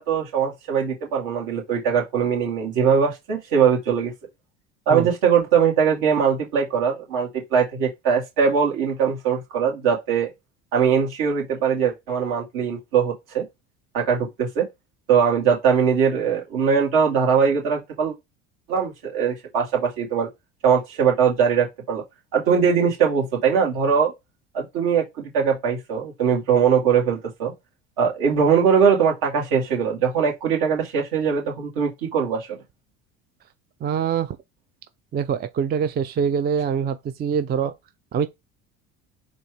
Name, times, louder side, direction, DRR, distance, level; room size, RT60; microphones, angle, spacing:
voice 1, 0.0-4.1 4.9-10.3 10.7-13.5 13.9-14.7 15.1-18.1 18.7-20.3 20.6-22.0 22.3-24.1 24.5-27.5 28.0-32.5, right 7 dB, 65° right, 2.3 m, -21 dB
voice 2, 33.8-34.4 35.1-37.7 38.1-38.3, right 7 dB, 25° right, 0.4 m, -24 dB
4.2 x 2.7 x 4.6 m
hypercardioid pair, 80°, 39 cm